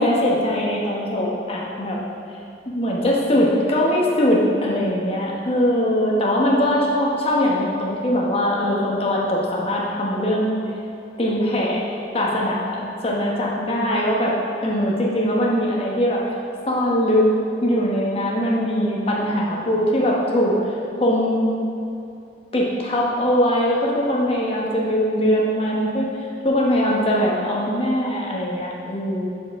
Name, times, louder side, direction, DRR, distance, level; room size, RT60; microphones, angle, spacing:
voice 1, 0.0-2.0 2.7-10.6 11.2-11.8 12.1-16.3 16.7-17.3 17.6-21.5 22.5-26.1 26.4-29.3, equal, 35° left, -3 dB, 1.1 m, -21 dB
6.6 x 6.6 x 3.6 m, 2.6 s
head